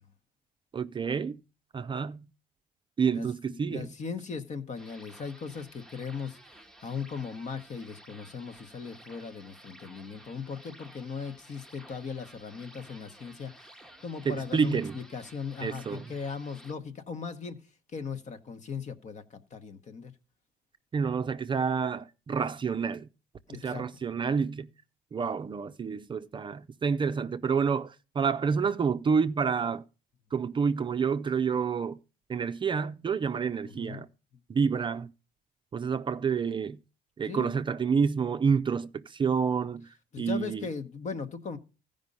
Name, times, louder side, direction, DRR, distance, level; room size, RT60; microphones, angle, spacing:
voice 1, 0.7-1.4 1.7-2.3 3.0-3.9 14.3-15.0 15.6-16.0 20.9-23.1 23.5-24.7 25.1-29.8 30.3-32.0 32.3-34.1 34.5-35.1 35.7-36.8 37.2-39.9 40.2-40.7, right 6 dB, 30° right, 0.5 m, -28 dB
voice 2, 3.1-6.4 6.8-13.5 14.0-17.6 17.9-20.1 23.5-23.8 33.6-34.0 37.2-37.5 40.1-41.6, left 5 dB, 45° left, 1.1 m, -38 dB
sound 1, 4.8-16.7, right 1 dB, 5° left, 0.9 m, -53 dB
15.0 x 5.2 x 5.3 m
cardioid pair, 110°, 17 cm